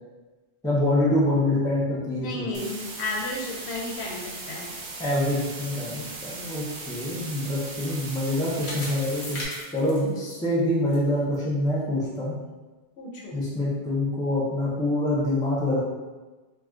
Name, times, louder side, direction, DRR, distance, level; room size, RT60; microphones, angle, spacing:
voice 1, 0.6-2.5 5.0-9.4 9.7-12.3 13.3-15.8, left 1 dB, 5° left, -6 dB, 0.4 m, -25 dB
voice 2, 2.2-4.8 13.0-13.4, left 2 dB, 85° left, -1 dB, 0.9 m, -33 dB
sound 1, 2.5-9.5, right 3 dB, 60° right, 0.6 m, -38 dB
sound 2, 6.6-11.0 11.3-11.4 12.0-12.1, left 1 dB, 55° left, 0.9 m, -40 dB
2.5 x 2.3 x 3.4 m, 1.2 s
omnidirectional pair, 1.1 m